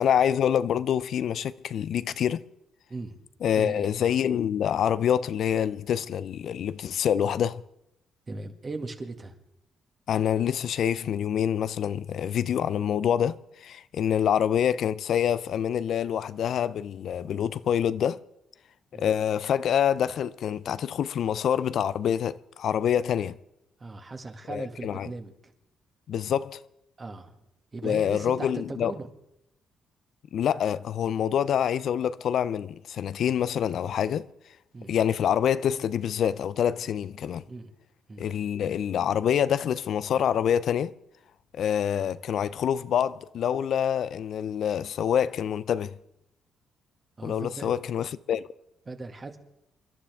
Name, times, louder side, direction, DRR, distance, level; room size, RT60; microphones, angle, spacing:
voice 1, 0.0-2.4 3.4-7.6 10.1-18.2 19.0-23.4 24.5-25.1 26.1-26.6 27.8-28.9 30.3-34.3 34.9-37.4 38.2-40.9 41.5-45.9 47.2-48.4, left 9 dB, 65° left, 0.4 m, -26 dB
voice 2, 2.9-3.3 3.5-3.9 8.3-9.4 18.9-19.1 23.8-25.3 27.0-27.4 27.7-29.1 34.7-35.0 37.5-37.7 38.1-38.3 47.2-47.7 48.9-49.4, right 3 dB, 30° right, 1.9 m, -38 dB
27.5 x 11.5 x 3.5 m
cardioid pair, 90°, 0 cm